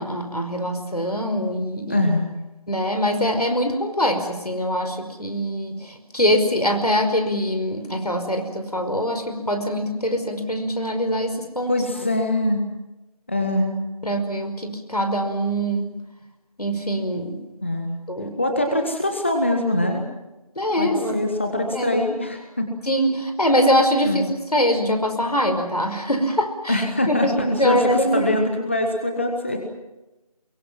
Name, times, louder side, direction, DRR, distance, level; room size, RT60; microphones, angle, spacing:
voice 1, 0.0-2.0 2.7-11.7 14.0-15.9 16.6-17.3 18.1-18.3 20.6-21.2 21.7-22.0 22.9-28.3, equal, 85° left, 6 dB, 5.3 m, -23 dB
voice 2, 1.9-2.4 11.7-12.6 13.3-13.8 17.6-18.0 18.4-20.0 20.8-22.7 24.0-24.3 26.7-29.7, left 1 dB, 20° left, 4 dB, 1.5 m, -23 dB
23.5 x 23.0 x 7.5 m, 1.0 s
figure-of-eight pair, 170°, 19 cm